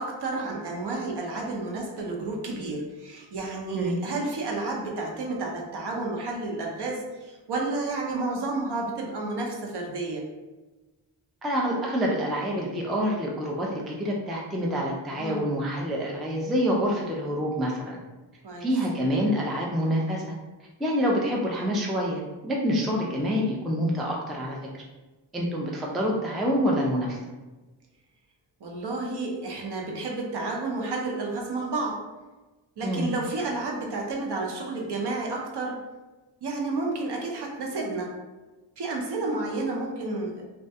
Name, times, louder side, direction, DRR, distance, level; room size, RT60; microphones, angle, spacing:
voice 1, 0.0-10.2 15.2-15.5 18.4-18.7 28.6-32.1 32.8-35.8 36.4-38.2 38.8-40.4, right 3 dB, 55° right, 0 dB, 0.7 m, -31 dB
voice 2, 11.4-18.0 18.6-20.2 20.8-24.6 25.3-27.2 32.8-33.1, equal, ahead, -2 dB, 0.3 m, -27 dB
2.3 x 2.1 x 2.7 m, 1.2 s
cardioid pair, 60°, 48 cm